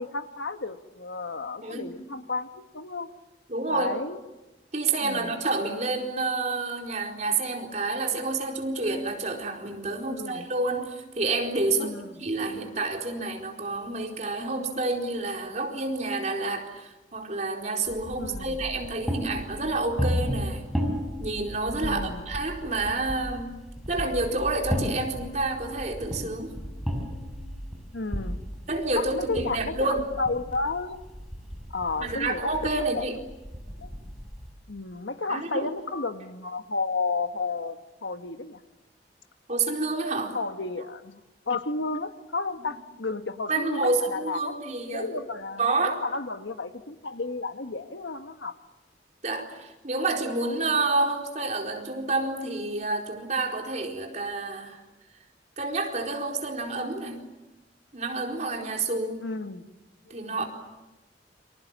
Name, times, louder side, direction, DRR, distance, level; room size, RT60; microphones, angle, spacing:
voice 1, 0.0-3.1 3.7-4.2 5.0-5.4 10.1-10.4 11.8-12.3 18.2-18.6 21.8-22.3 27.9-28.4 28.9-31.0 31.7-32.4 32.9-33.0 33.8-33.9 34.7-38.6 40.3-41.2 41.5-44.5 44.9-48.6 59.2-59.7 60.0-60.4, left 3 dB, 85° left, 8 dB, 1.5 m, -32 dB
voice 2, 3.5-3.9 4.7-20.6 21.2-23.5 23.9-26.6 28.7-30.0 32.0-33.2 35.3-35.7 39.5-40.4 43.5-45.2 45.6-46.0 49.2-54.8 55.6-57.2 57.9-59.2 60.1-60.4, right 3 dB, 40° right, 1 dB, 4.3 m, -29 dB
sound 1, 17.9-34.5, equal, ahead, 6.0 m, -34 dB
29.0 x 26.0 x 7.5 m, 1.0 s
head